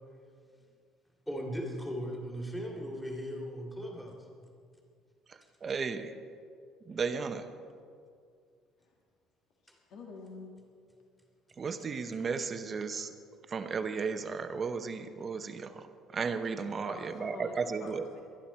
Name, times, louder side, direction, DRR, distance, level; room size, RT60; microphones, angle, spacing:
voice 1, 1.3-4.3 9.7-9.8, equal, 5° left, 0 dB, 2.3 m, -38 dB
voice 2, 5.3-6.1 6.9-7.5 11.6-13.1 13.5-18.1, right 5 dB, 30° right, 8 dB, 0.8 m, -35 dB
voice 3, 9.6-10.6 16.9-18.2, left 3 dB, 65° left, 0 dB, 1.8 m, -47 dB
20.0 x 11.5 x 4.4 m, 2.3 s
cardioid pair, 130°, 0 cm